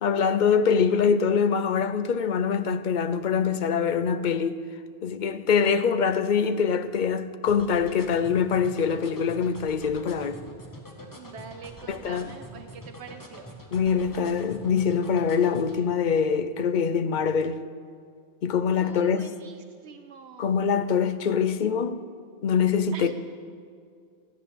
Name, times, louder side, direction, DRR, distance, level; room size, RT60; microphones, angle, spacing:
voice 1, 0.0-4.6 5.0-10.4 11.9-12.3 13.7-17.6 18.4-19.3 20.4-22.0 22.4-23.1, left 6 dB, 50° left, 0.7 m, -24 dB
sound 1, 7.5-15.8, equal, 20° left, 1.5 m, -44 dB
voice 2, 11.2-13.5 18.7-20.5 22.9-23.1, right 6 dB, 80° right, 1.0 m, -44 dB
14.0 x 10.5 x 6.9 m
omnidirectional pair, 1.1 m